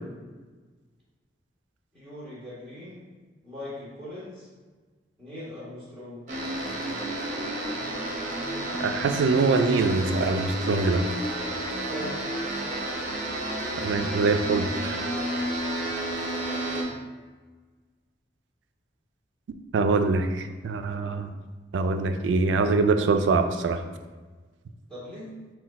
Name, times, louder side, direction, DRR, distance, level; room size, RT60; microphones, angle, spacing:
voice 1, 1.9-3.1 3.4-4.5 5.2-6.2 11.9-12.2 16.6-16.9 24.9-25.3, left 1 dB, 5° left, -12 dB, 1.4 m, -40 dB
sound 1, 6.3-16.8, right 1 dB, 45° right, 0.7 m, -30 dB
voice 2, 8.8-11.0 13.8-15.0 19.7-21.3 21.7-23.8, right 3 dB, 85° right, 8 dB, 0.3 m, -24 dB
4.0 x 2.3 x 4.1 m, 1.4 s
head